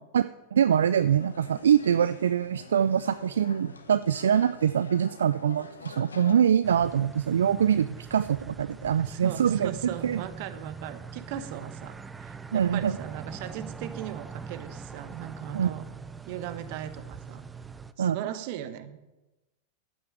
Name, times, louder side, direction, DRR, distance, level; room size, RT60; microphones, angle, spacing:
voice 1, 0.1-9.7 10.0-10.2 12.5-12.9 15.5-15.7 18.0-18.2, right 8 dB, 70° right, 14 dB, 0.3 m, -24 dB
sound 1, 0.7-6.4, left 4 dB, 80° left, 1.2 m, -47 dB
sound 2, 6.6-17.9, right 5 dB, 15° right, 0.6 m, -42 dB
voice 2, 9.0-15.8 16.3-17.4 18.0-19.0, right 11 dB, 50° right, 12 dB, 1.0 m, -38 dB
11.5 x 8.8 x 6.3 m, 1.0 s
figure-of-eight pair, 90°, 0 cm